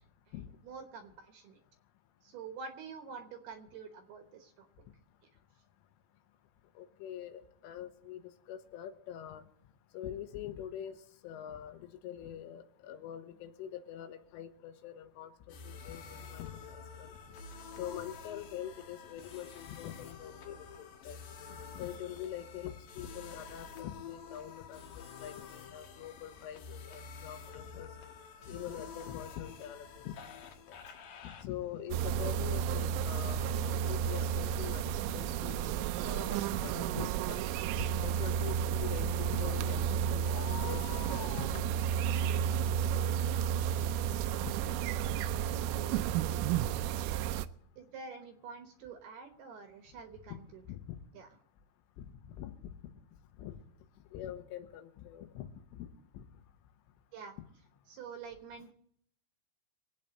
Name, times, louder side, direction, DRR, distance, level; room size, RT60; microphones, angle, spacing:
voice 1, 0.6-1.6 2.2-4.7 44.5-44.7 45.5-46.5 47.8-50.6 51.1-51.3 57.1-57.4 57.9-58.7, right 5 dB, 70° right, 6 dB, 2.6 m, -47 dB
voice 2, 6.8-8.2 8.5-9.4 9.9-11.0 11.2-15.3 15.7-17.1 17.8-21.2 21.7-27.9 28.5-30.2 30.7-30.8 31.2-37.4 37.8-41.8 42.4-42.5 43.9-44.1 44.7-44.8 50.7-50.8 52.4-52.5 53.4-53.6 54.1-55.9 56.1-56.2, left 10 dB, 90° left, 8 dB, 3.7 m, -44 dB
sound 1, 15.5-34.9, left 5 dB, 65° left, 2.4 m, -49 dB
sound 2, 31.9-47.5, right 9 dB, 85° right, 3.2 m, -32 dB
25.0 x 8.9 x 4.1 m, 0.71 s
omnidirectional pair, 5.6 m